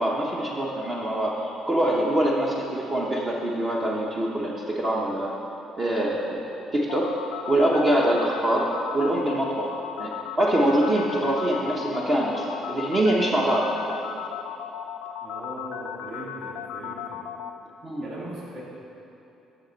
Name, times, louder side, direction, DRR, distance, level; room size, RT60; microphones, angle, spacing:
voice 1, 0.0-5.3 5.8-7.1 7.5-8.7 8.9-9.7 10.0-13.7 17.8-18.0, right 1 dB, 30° right, -3 dB, 0.9 m, -24 dB
sound 1, 6.9-17.5, left 10 dB, 85° left, 0.3 m, -36 dB
voice 2, 15.2-17.2 18.0-18.6, right 1 dB, 60° right, -5 dB, 2.1 m, -39 dB
12.0 x 6.1 x 4.0 m, 3.0 s
cardioid pair, 95°, 0 cm